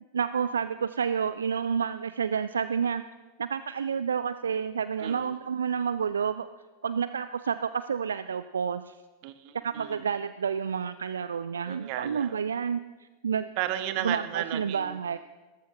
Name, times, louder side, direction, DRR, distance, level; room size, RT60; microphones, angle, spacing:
voice 1, 0.1-3.0 3.4-6.5 6.8-9.0 9.6-12.8 13.2-13.5 14.0-15.2, right 7 dB, 70° right, 13 dB, 0.3 m, -29 dB
voice 2, 5.0-5.3 9.2-10.0 11.7-12.4 13.6-15.0, right 12 dB, 45° right, 12 dB, 0.8 m, -34 dB
18.0 x 14.0 x 3.0 m, 1.2 s
figure-of-eight pair, 90°, 0 cm